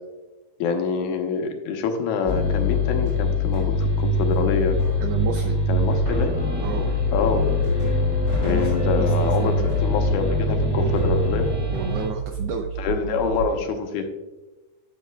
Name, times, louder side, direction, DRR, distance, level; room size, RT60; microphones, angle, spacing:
voice 1, 0.6-4.8 5.7-6.4 7.1-7.5 8.4-11.5 12.8-14.1, left 5 dB, 80° left, 5 dB, 2.3 m, -26 dB
sound 1, 2.3-12.1, left 2 dB, 10° right, 1.7 m, -23 dB
sound 2, 4.6-13.5, right 6 dB, 65° right, 2.6 m, -31 dB
voice 2, 5.0-5.5 6.6-6.9 8.4-9.0 9.4-9.7 11.7-12.7, right 6 dB, 85° right, 5 dB, 1.4 m, -31 dB
12.5 x 7.0 x 2.2 m, 1.1 s
omnidirectional pair, 3.4 m